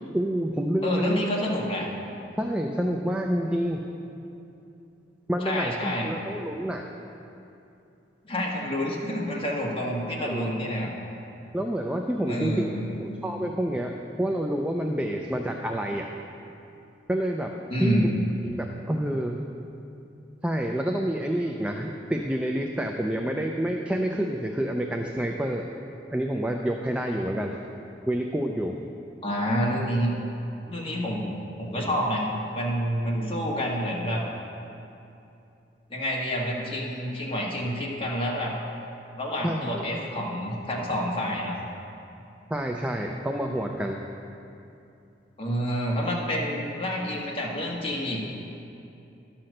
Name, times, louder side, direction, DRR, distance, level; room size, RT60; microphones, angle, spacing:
voice 1, 0.1-1.3 2.4-3.8 5.3-6.9 10.2-10.5 11.5-12.7 13.0-16.1 17.1-18.1 18.4-19.4 20.4-25.6 26.1-27.6 28.1-28.8 39.4-39.9 42.5-44.0, right 1 dB, 5° right, 2 dB, 0.4 m, -28 dB
voice 2, 0.8-1.9 5.4-6.2 8.2-10.9 12.3-13.1 17.7-18.1 29.2-30.1 30.6-31.3 31.6-34.2 35.9-38.5 39.2-41.6 45.4-48.2, equal, 30° left, -3 dB, 1.6 m, -28 dB
11.5 x 5.9 x 6.5 m, 2.7 s
head